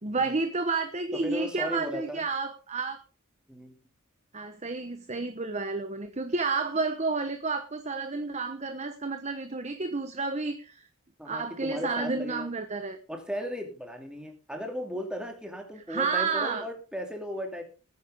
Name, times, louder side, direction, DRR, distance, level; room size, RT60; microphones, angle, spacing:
voice 1, 0.0-3.0 4.3-10.8 11.2-13.0 15.9-16.6, right 4 dB, 30° right, 9 dB, 1.1 m, -30 dB
voice 2, 1.1-2.2 3.5-3.7 11.2-12.5 13.1-17.6, equal, 5° right, 3 dB, 2.5 m, -36 dB
19.5 x 9.7 x 3.6 m, 0.32 s
head